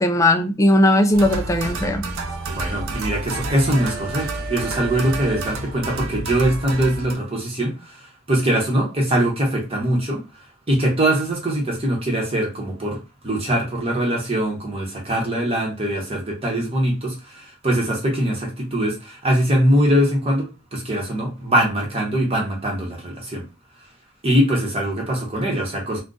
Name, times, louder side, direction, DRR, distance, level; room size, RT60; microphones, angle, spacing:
voice 1, 0.0-2.0, left 1 dB, 15° left, 0.3 m, -17 dB
sound 1, 1.1-7.1, right 2 dB, 90° right, 0.6 m, -29 dB
voice 2, 2.5-7.7 8.3-10.2 10.7-23.4 24.2-26.0, right 1 dB, 30° right, 0.9 m, -22 dB
2.4 x 2.2 x 3.8 m
head